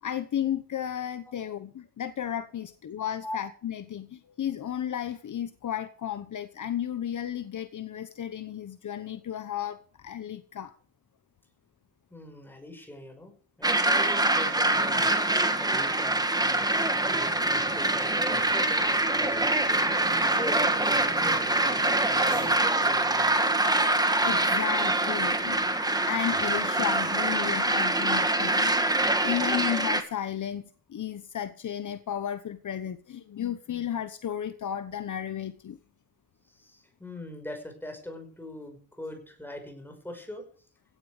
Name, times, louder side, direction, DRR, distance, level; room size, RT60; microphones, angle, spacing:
voice 1, 0.0-10.7 15.2-15.3 24.0-25.7 26.0-35.8, left 10 dB, 50° left, 1.1 m, -33 dB
voice 2, 12.1-13.3 13.6-21.8 22.2-23.4 36.4-40.5, left 1 dB, 5° left, 5.7 m, -42 dB
sound 1, 13.6-30.0, right 2 dB, 10° right, 1.7 m, -25 dB
sound 2, 17.0-22.5, right 4 dB, 40° right, 3.1 m, -44 dB
16.5 x 12.0 x 5.0 m
wide cardioid pair, 170°, 38 cm